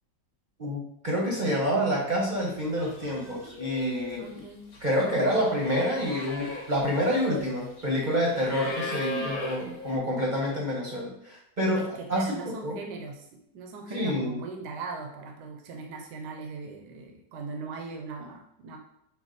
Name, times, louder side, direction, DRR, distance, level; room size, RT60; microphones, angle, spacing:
voice 1, 0.6-4.4 4.8-12.8 13.9-14.4, equal, 35° right, -4 dB, 0.8 m, -28 dB
sound 1, 2.4-2.6 2.8-10.0, left 2 dB, 65° left, 1.4 m, -38 dB
voice 2, 4.2-4.7 8.9-9.3 11.8-18.8, right 4 dB, 75° right, 3 dB, 1.2 m, -40 dB
6.0 x 2.2 x 3.8 m, 0.77 s
omnidirectional pair, 1.9 m